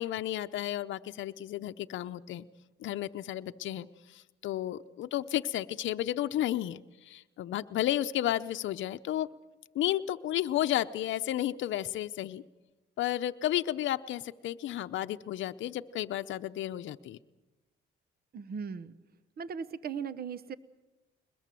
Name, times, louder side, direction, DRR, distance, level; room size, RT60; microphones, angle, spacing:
voice 1, 0.0-2.4 2.8-3.9 4.1-9.3 9.7-12.4 13.0-17.2, left 13 dB, 75° left, 8 dB, 0.7 m, -32 dB
voice 2, 18.3-18.9 19.4-20.6, right 6 dB, 50° right, 16 dB, 1.0 m, -38 dB
21.5 x 21.0 x 7.6 m, 1.0 s
cardioid pair, 90°, 20 cm